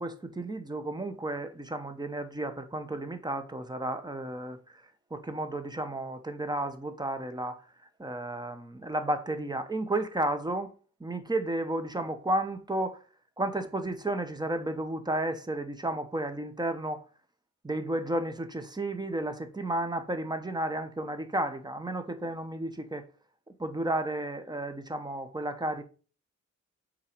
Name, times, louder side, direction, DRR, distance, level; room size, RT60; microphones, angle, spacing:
voice 1, 0.0-4.8 5.1-7.6 8.0-10.7 11.0-13.0 13.4-17.1 17.6-23.0 23.6-25.8, right 1 dB, 15° right, 0.8 m, -32 dB
5.5 x 4.1 x 4.9 m
wide cardioid pair, 115°, 29 cm